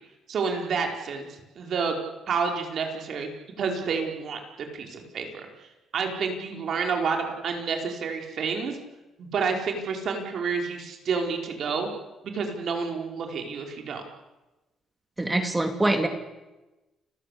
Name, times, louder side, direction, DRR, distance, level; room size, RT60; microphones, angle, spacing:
voice 1, 0.3-1.2 1.6-1.9 2.3-3.3 3.6-4.4 4.7-5.3 5.9-8.8 9.2-11.9 12.3-14.0, right 5 dB, 60° right, 3 dB, 4.8 m, -29 dB
voice 2, 15.2-16.1, right 2 dB, 15° right, 6 dB, 2.4 m, -24 dB
29.5 x 15.0 x 8.5 m, 1.1 s
cardioid pair, 115°, 0 cm